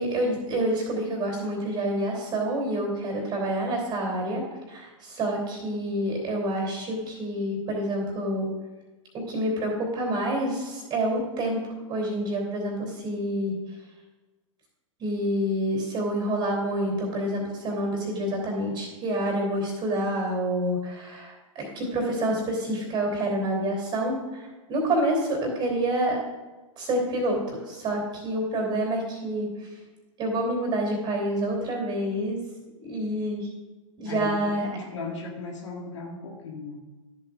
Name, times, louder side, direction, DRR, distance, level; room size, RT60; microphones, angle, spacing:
voice 1, 0.0-8.5 9.3-11.6 11.9-13.5 15.0-26.2 26.8-29.7 30.2-32.4 32.8-33.5 34.0-34.7, right 1 dB, 25° right, 0 dB, 3.3 m, -28 dB
voice 2, 34.0-36.8, left 3 dB, 60° left, 0 dB, 1.7 m, -37 dB
13.5 x 8.2 x 2.5 m, 1.2 s
figure-of-eight pair, 100°, 17 cm